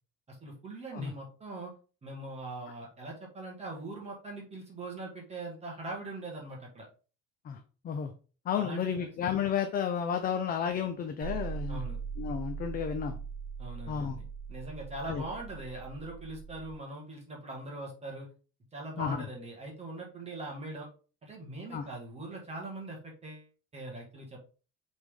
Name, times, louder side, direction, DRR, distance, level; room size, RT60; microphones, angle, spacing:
voice 1, 0.3-1.7 2.0-6.9 8.6-9.1 11.7-12.0 13.6-14.2 14.5-18.3 18.7-20.9 21.2-24.4, right 2 dB, 20° right, -1 dB, 1.6 m, -42 dB
voice 2, 8.5-11.8 12.2-13.2 13.9-14.2 15.1-15.2 19.0-19.3 21.7-21.8, left 8 dB, 30° left, 6 dB, 0.5 m, -32 dB
sound 1, 11.2-16.7, right 6 dB, 40° right, 0.9 m, -40 dB
8.0 x 3.5 x 3.7 m, 0.36 s
cardioid pair, 170°, 31 cm